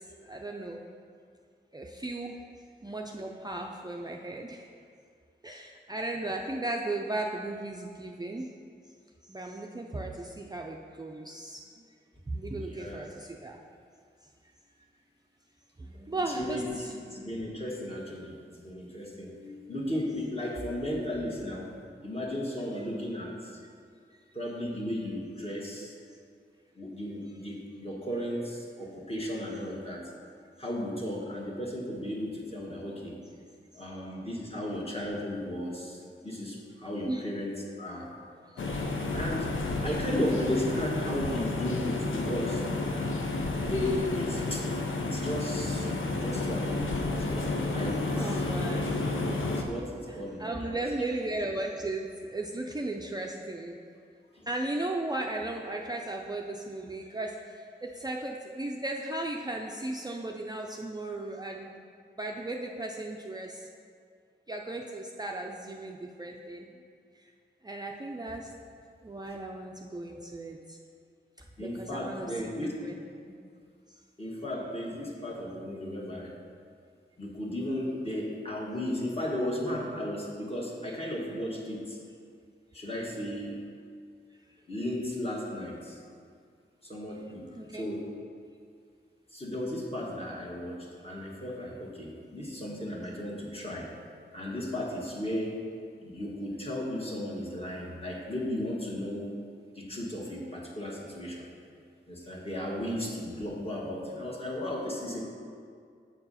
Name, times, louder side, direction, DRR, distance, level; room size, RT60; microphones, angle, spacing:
voice 1, 0.2-0.8 1.7-2.4 2.8-4.7 5.4-8.5 9.2-11.9 12.3-13.6 15.8-16.9 24.1-24.2 34.1-34.3 37.1-37.3 37.9-38.0 38.4-38.7 41.3-41.4 48.1-49.2 50.1-53.8 54.5-61.7 62.2-63.7 64.5-66.7 67.2-67.3 67.6-68.5 69.0-70.8 71.6-72.3 72.6-73.4 73.9-74.0 87.6-87.9, right 2 dB, 20° right, 0 dB, 0.5 m, -36 dB
voice 2, 12.5-13.1 16.3-16.6 17.1-21.7 22.0-23.6 24.3-25.9 26.8-30.1 30.6-33.1 33.7-38.1 39.1-39.5 39.8-42.6 43.6-44.7 45.0-48.4 49.6-50.7 54.3-54.5 68.3-68.4 71.6-72.8 74.2-76.3 77.2-82.0 82.7-83.6 84.7-86.0 86.8-88.1 89.3-93.9 94.3-95.6 96.0-99.3 99.7-101.5 102.1-105.2, left 1 dB, 30° left, -3 dB, 1.6 m, -35 dB
sound 1, 38.6-49.6, left 2 dB, 90° left, 0.6 m, -31 dB
7.5 x 4.6 x 5.6 m, 2.2 s
wide cardioid pair, 65°, 20 cm